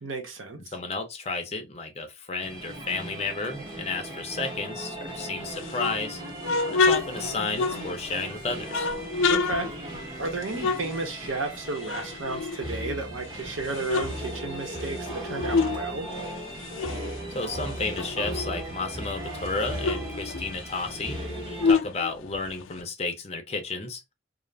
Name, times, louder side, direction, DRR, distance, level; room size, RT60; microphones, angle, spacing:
voice 1, 0.0-0.7 9.3-9.7 10.2-16.1, right 3 dB, 90° right, 0.8 m, -33 dB
voice 2, 0.7-6.2 6.7-8.9 17.3-21.2 21.6-24.0, left 3 dB, 30° left, 0.5 m, -32 dB
sound 1, 2.4-21.7, right 1 dB, 20° right, 1.1 m, -37 dB
sound 2, 5.5-8.2 8.7-11.6 11.8-13.2 13.6-15.8 16.1-18.7 19.0-19.1 19.4-22.8, left 4 dB, 85° left, 0.4 m, -28 dB
2.4 x 2.0 x 3.1 m
head